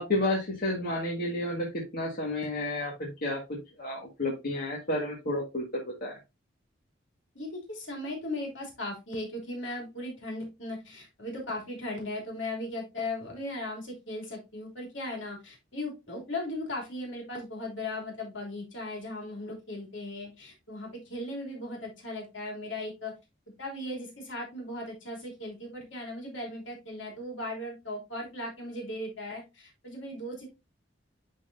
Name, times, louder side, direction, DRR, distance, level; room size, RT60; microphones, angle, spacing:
voice 1, 0.0-3.4 3.8-6.2, left 1 dB, 50° left, -2 dB, 1.7 m, -31 dB
voice 2, 7.3-23.1 23.6-30.5, left 1 dB, 70° left, 0 dB, 3.0 m, -37 dB
11.0 x 3.9 x 2.7 m, 0.24 s
head